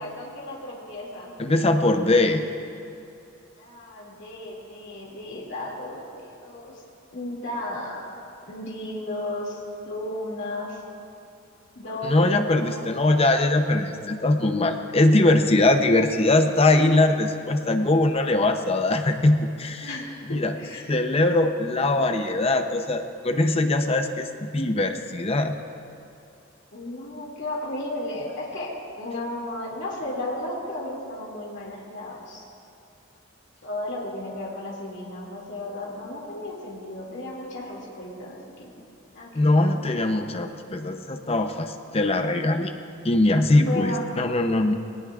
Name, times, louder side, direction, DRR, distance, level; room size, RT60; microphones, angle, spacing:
voice 1, 0.0-1.3 3.6-6.8 7.1-8.2 8.5-10.8 11.8-12.9 19.8-20.8 26.7-28.7 29.0-32.5 33.6-38.7 39.1-40.3 43.5-44.1, left 1 dB, 60° left, -4 dB, 2.4 m, -34 dB
voice 2, 1.4-2.4 12.0-19.9 20.3-20.5 20.9-24.3 24.5-25.5 39.3-42.7 43.0-44.7, left 2 dB, 30° left, 7 dB, 0.7 m, -21 dB
20.0 x 18.5 x 2.5 m, 2.5 s
head